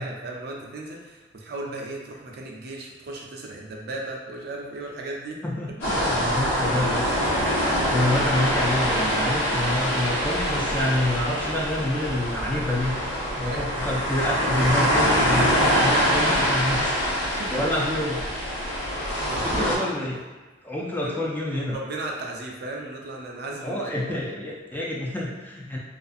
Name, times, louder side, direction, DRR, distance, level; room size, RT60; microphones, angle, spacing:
voice 1, 0.0-5.4 13.4-13.6 17.2-17.6 19.2-20.1 21.0-21.2 21.7-24.1, right 2 dB, 60° right, -1 dB, 0.4 m, -36 dB
voice 2, 5.4-7.1 7.9-12.9 13.4-16.9 17.5-18.2 19.4-20.2 20.6-21.8 23.6-25.8, left 1 dB, 10° left, -3 dB, 0.3 m, -27 dB
sound 1, 5.8-19.8, equal, 70° left, 0.8 m, -24 dB
2.5 x 2.4 x 2.4 m, 1.3 s
head